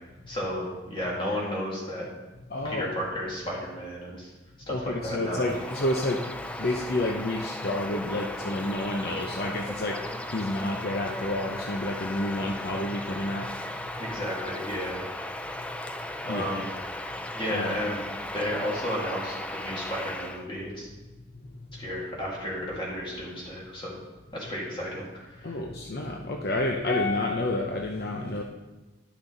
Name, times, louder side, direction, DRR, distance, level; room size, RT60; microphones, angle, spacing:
voice 1, 0.3-2.1 2.6-4.3 4.7-5.5 14.0-15.0 16.2-16.7 17.3-18.0 18.3-20.9 21.8-24.0 24.3-25.6, equal, 30° left, -4 dB, 2.3 m, -33 dB
voice 2, 2.5-2.9 4.7-6.2 6.6-10.0 10.3-13.5 16.3-16.6 17.5-17.8 25.4-28.4, left 1 dB, 60° left, 0 dB, 0.7 m, -29 dB
Bird vocalization bird call bird song, 5.2-20.5, left 1 dB, 5° left, 0.4 m, -36 dB
11.5 x 6.0 x 3.9 m, 1.1 s
head